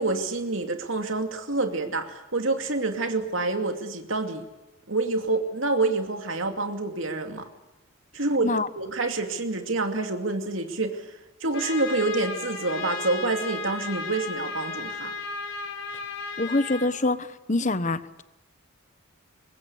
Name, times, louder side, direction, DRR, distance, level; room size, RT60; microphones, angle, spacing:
voice 1, 0.0-4.4 4.9-7.5 8.1-11.1 11.4-15.1, right 3 dB, 70° right, 5 dB, 2.6 m, -27 dB
Trumpet, 11.5-16.9, left 3 dB, 80° left, 4.9 m, -34 dB
voice 2, 16.4-18.2, left 2 dB, 35° left, 14 dB, 1.1 m, -25 dB
24.5 x 21.5 x 8.3 m, 1.0 s
head